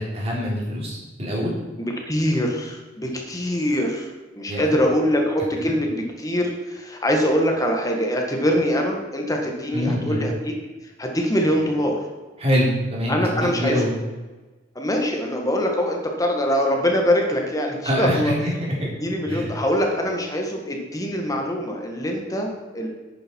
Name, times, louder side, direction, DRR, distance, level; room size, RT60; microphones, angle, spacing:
voice 1, 0.0-1.5 4.5-4.8 9.7-10.2 12.4-13.9 17.8-18.5 19.2-19.5, equal, 30° right, -4 dB, 3.7 m, -24 dB
voice 2, 1.8-4.1 4.3-10.5 11.0-12.0 13.1-13.8 14.7-18.3 19.0-22.9, equal, 20° left, 2 dB, 1.8 m, -23 dB
10.5 x 9.2 x 4.7 m, 1.2 s
head